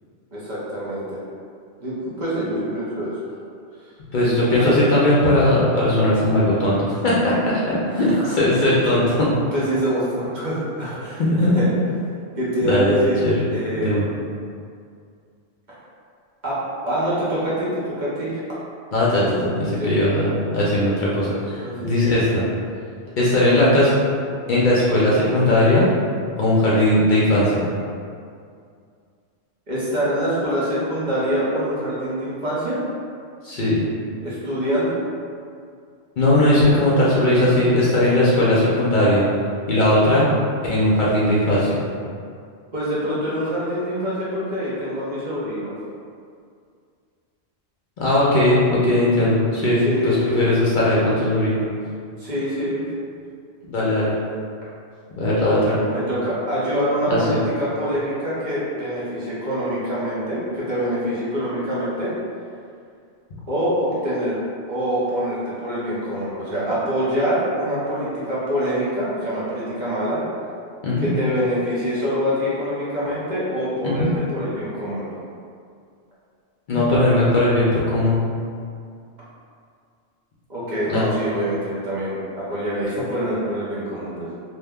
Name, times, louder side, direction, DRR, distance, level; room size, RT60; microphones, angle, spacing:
voice 1, 0.3-1.2 1.8-3.1 4.4-4.8 7.9-8.3 9.5-11.7 12.4-13.2 13.5-14.1 16.4-16.6 16.8-18.3 19.7-19.9 21.6-21.9 29.7-32.8 34.2-35.0 42.7-45.7 49.8-50.4 52.2-52.8 55.4-62.1 63.5-64.4 64.7-70.2 71.0-75.1 80.5-84.3, equal, 45° right, -9 dB, 0.8 m, -25 dB
voice 2, 4.1-9.3 11.2-11.7 12.6-12.9 13.2-13.4 13.8-14.0 18.9-22.4 23.2-23.9 24.5-25.9 26.4-27.6 33.4-33.8 36.2-39.2 39.7-40.3 40.6-41.8 48.0-51.6 53.7-54.1 55.2-55.8 57.1-57.2 70.8-71.1 73.8-74.1 76.7-78.2 80.9-81.0, left 1 dB, 55° left, -7 dB, 0.6 m, -18 dB
2.7 x 2.1 x 3.4 m, 2.3 s
omnidirectional pair, 1.1 m